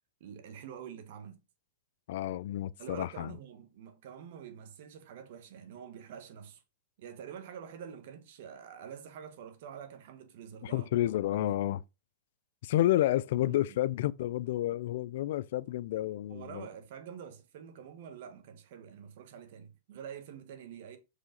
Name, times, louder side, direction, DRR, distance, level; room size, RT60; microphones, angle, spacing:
voice 1, 0.2-1.4 2.8-6.6 7.0-10.9 11.3-11.6 12.8-12.9 13.3-13.6 16.3-21.0, right 8 dB, 60° right, 1.4 m, -47 dB
voice 2, 2.1-3.3 10.6-11.8 12.6-16.7, left 14 dB, 65° left, 0.3 m, -30 dB
6.4 x 4.9 x 3.9 m
hypercardioid pair, 135°, 0 cm